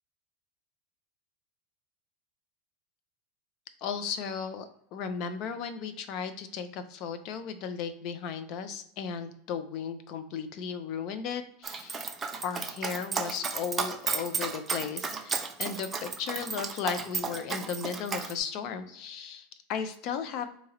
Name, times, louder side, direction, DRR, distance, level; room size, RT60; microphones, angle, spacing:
voice 1, 3.8-12.1 12.4-20.5, left 7 dB, 50° left, 9 dB, 0.5 m, -35 dB
Dog, 11.6-18.3, right 5 dB, 20° right, 0.5 m, -33 dB
3.7 x 2.8 x 2.9 m, 0.72 s
supercardioid pair, 125°, 0 cm